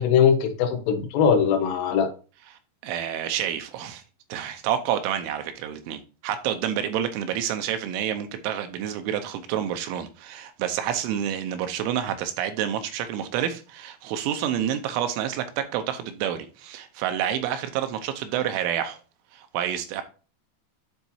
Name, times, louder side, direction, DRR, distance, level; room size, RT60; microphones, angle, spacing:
voice 1, 0.0-2.1, left 7 dB, 85° left, 2.1 m, -21 dB
voice 2, 2.5-4.0 4.3-19.0 19.3-20.0, right 10 dB, 80° right, 3.0 m, -28 dB
11.5 x 4.1 x 2.7 m
omnidirectional pair, 5.7 m